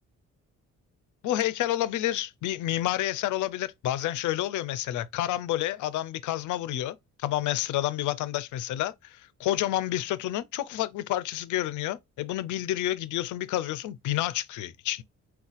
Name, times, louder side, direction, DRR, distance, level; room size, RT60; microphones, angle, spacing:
voice 1, 1.2-15.0, left 14 dB, 75° left, 0.5 m, -29 dB
3.9 x 2.3 x 2.5 m
cardioid pair, 90°, 30 cm